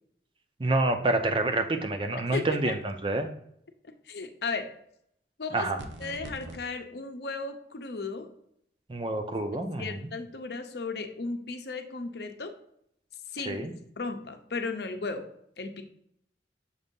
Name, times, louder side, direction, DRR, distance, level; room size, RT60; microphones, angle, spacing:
voice 1, 0.6-3.3 5.5-5.8 8.9-10.1 13.4-13.7, right 2 dB, 30° right, 7 dB, 0.5 m, -28 dB
voice 2, 2.3-2.7 4.1-4.7 5.4-5.7 6.0-8.3 9.5-12.5 13.3-13.6 14.0-15.2 15.6-15.8, left 4 dB, 65° left, 6 dB, 0.7 m, -35 dB
sound 1, 5.8-6.6, right 1 dB, 90° right, 0.7 m, -42 dB
6.6 x 2.7 x 5.3 m, 0.71 s
head